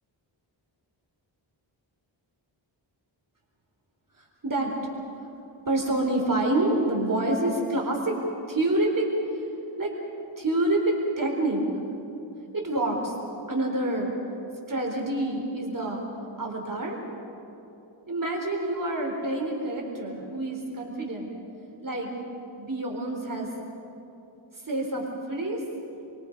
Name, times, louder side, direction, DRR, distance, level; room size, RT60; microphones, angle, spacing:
voice 1, 4.2-4.7 5.7-8.2 8.5-9.5 9.8-9.9 10.4-11.7 12.5-13.1 13.5-14.1 14.7-16.0 16.4-17.0 18.1-21.3 21.8-22.1 22.6-23.5 24.5-25.6, right 1 dB, 40° right, 0 dB, 3.9 m, -27 dB
29.0 x 23.0 x 5.3 m, 2.9 s
wide cardioid pair, 75°, 48 cm